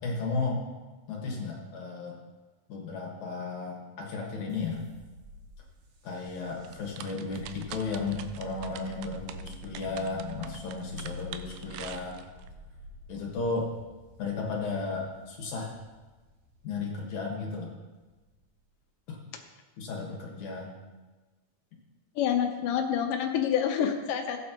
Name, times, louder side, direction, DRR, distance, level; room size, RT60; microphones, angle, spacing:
voice 1, 0.0-0.7 1.1-2.2 2.7-4.9 6.0-12.2 13.1-13.7 14.2-15.8 16.6-17.7 19.1-19.2 19.8-20.7, left 4 dB, 60° left, -1 dB, 2.5 m, -34 dB
sound 1, 4.5-18.7, equal, 60° right, 2.4 m, -48 dB
sound 2, 6.6-12.5, right 11 dB, 80° right, 2.3 m, -44 dB
voice 2, 22.2-24.4, left 8 dB, 75° left, 4 dB, 2.2 m, -27 dB
16.0 x 9.1 x 2.9 m, 1.3 s
omnidirectional pair, 4.5 m